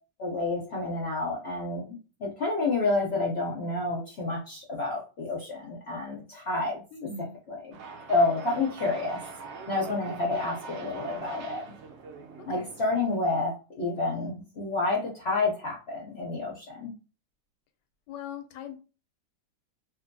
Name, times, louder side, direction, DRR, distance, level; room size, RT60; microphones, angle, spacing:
voice 1, 0.2-6.8 7.5-7.7 8.1-9.2 9.7-11.6 12.5-16.9, left 3 dB, 65° left, -2 dB, 0.6 m, -29 dB
voice 2, 6.9-7.3 12.5-12.7 18.1-18.8, left 6 dB, 85° left, 8 dB, 1.2 m, -39 dB
sound 1, 7.7-13.2, right 4 dB, 80° right, 0.6 m, -43 dB
2.6 x 2.5 x 2.6 m, 0.35 s
omnidirectional pair, 1.8 m